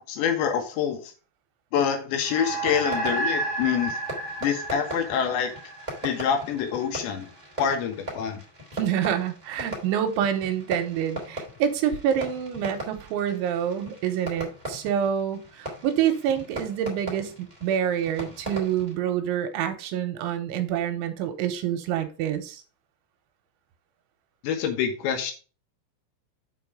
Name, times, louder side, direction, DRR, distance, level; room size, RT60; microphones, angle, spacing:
voice 1, 0.1-1.1 1.7-4.0 4.4-5.5 6.0-7.3 7.6-8.4 24.4-25.3, left 8 dB, 75° left, 5 dB, 3.3 m, -26 dB
sound 1, 2.2-6.9, right 2 dB, 55° left, 1.4 m, -32 dB
Fireworks, 2.4-18.9, equal, 10° right, 1.8 m, -39 dB
voice 2, 8.7-22.6, right 9 dB, 85° right, 7 dB, 3.3 m, -27 dB
7.7 x 4.9 x 4.8 m, 0.35 s
omnidirectional pair, 5.5 m